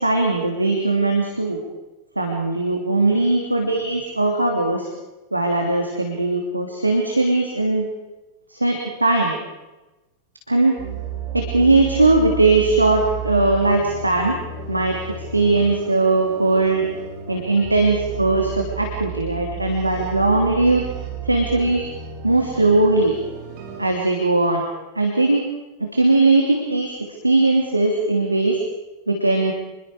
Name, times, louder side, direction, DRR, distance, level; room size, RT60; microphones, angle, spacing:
voice 1, 0.0-1.6 2.2-4.9 5.3-7.9 8.5-9.4 10.5-10.8 11.3-14.4 14.7-16.9 17.3-20.8 21.2-21.9 22.2-23.1 23.8-24.6 24.9-25.4 25.8-26.9 27.2-28.6 29.1-29.5, right 2 dB, 85° right, 2 dB, 3.0 m, -19 dB
sound 1, 10.8-23.9, right 8 dB, 45° right, 7.8 m, -32 dB
27.5 x 22.5 x 5.0 m, 1.1 s
figure-of-eight pair, 90°, 0 cm